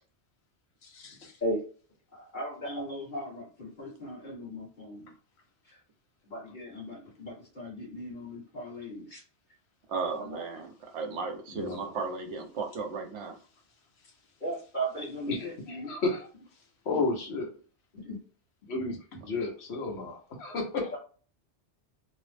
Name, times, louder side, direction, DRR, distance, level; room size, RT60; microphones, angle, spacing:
voice 1, 0.8-1.3 11.5-11.9 15.3-16.3 16.8-17.5 18.7-21.0, left 3 dB, 65° left, 1 dB, 1.1 m, -33 dB
voice 2, 2.3-5.1 6.3-9.2 14.4-15.5 15.8-15.9 18.0-18.2, right 1 dB, 40° left, -4 dB, 1.4 m, -36 dB
voice 3, 9.9-13.4, right 4 dB, 75° right, 5 dB, 0.9 m, -35 dB
2.9 x 2.0 x 3.2 m, 0.40 s
omnidirectional pair, 1.2 m